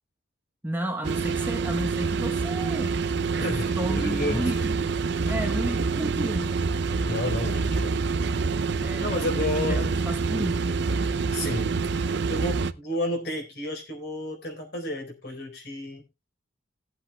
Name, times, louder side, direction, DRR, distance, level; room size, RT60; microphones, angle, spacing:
voice 1, 0.6-3.0 3.8-4.8 5.3-6.6 8.8-10.9, right 1 dB, 10° right, 1.0 m, -33 dB
sound 1, 1.0-12.7, right 4 dB, 60° right, 0.5 m, -27 dB
voice 2, 3.4-4.5 5.2-5.4 7.0-8.0 9.0-9.9 11.3-11.7 12.1-16.0, left 1 dB, 55° left, 3.9 m, -31 dB
18.5 x 8.1 x 2.3 m
head